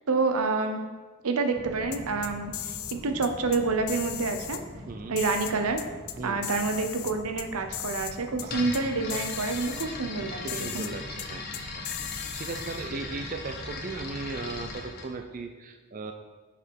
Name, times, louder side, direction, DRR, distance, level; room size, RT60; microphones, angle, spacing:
voice 1, 0.1-0.8 1.2-4.6 5.1-5.8 6.2-10.8, right 3 dB, 90° right, 6 dB, 0.7 m, -28 dB
sound 1, 1.5-14.8, equal, ahead, 1.2 m, -44 dB
sound 2, 1.9-3.0 3.2-3.6 3.9-4.6 5.2-6.2 6.4-7.5 7.7-8.1 8.4-8.5 8.7-8.8 9.1-9.9 10.5-10.9 11.2-11.3 11.5-12.9, left 12 dB, 75° left, 0.5 m, -37 dB
voice 2, 4.9-5.2 6.2-6.4 8.3-8.5 10.4-16.1, right 3 dB, 40° right, 5 dB, 0.4 m, -38 dB
sound 3, 8.5-15.1, left 3 dB, 45° left, 0.9 m, -39 dB
6.7 x 4.9 x 4.6 m, 1.3 s
head